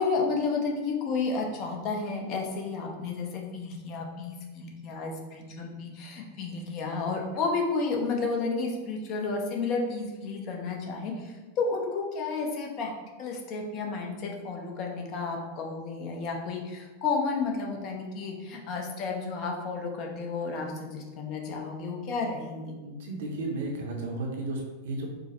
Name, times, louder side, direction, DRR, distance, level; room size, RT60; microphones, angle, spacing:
voice 1, 0.0-12.9 13.2-22.8, left 4 dB, 40° left, 1 dB, 0.6 m, -31 dB
voice 2, 22.8-25.1, right 2 dB, 55° right, 0 dB, 0.6 m, -33 dB
4.7 x 2.0 x 2.5 m, 1.2 s
figure-of-eight pair, 90°, 0 cm